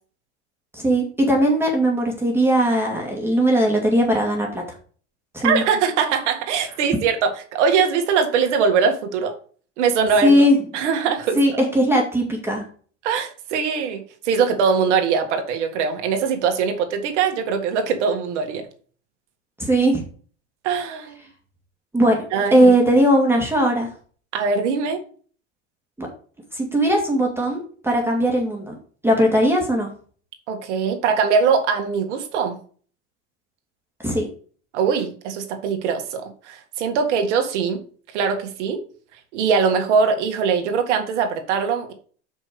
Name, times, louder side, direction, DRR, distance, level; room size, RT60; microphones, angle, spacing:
voice 1, 0.7-4.6 5.3-5.6 10.2-10.6 11.4-12.6 19.6-20.0 21.9-22.2 22.5-23.9 26.0-26.1 26.5-28.8 29.0-29.9 34.0-34.3, right 1 dB, 5° right, 0 dB, 1.9 m, -19 dB
voice 2, 5.4-9.3 9.8-10.3 10.7-11.4 13.0-18.6 20.6-21.2 22.3-22.7 24.3-25.0 30.5-32.6 34.7-37.8 38.1-38.8 39.3-41.9, right 6 dB, 80° right, 5 dB, 1.8 m, -21 dB
6.2 x 5.4 x 5.0 m, 0.43 s
supercardioid pair, 105°, 35 cm